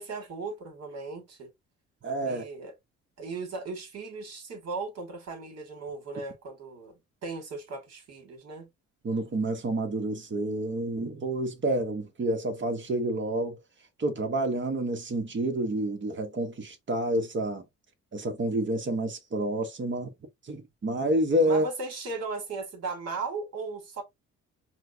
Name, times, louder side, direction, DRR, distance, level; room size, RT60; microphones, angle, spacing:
voice 1, 0.0-1.5 2.2-2.7 3.2-8.7 21.4-24.0, right 3 dB, 55° right, 2.0 m, -37 dB
voice 2, 2.0-2.4 9.0-13.6 14.0-17.6 18.1-20.1 20.4-21.7, right 1 dB, 40° right, 1.3 m, -29 dB
4.4 x 2.3 x 2.7 m
cardioid pair, 90°, 30 cm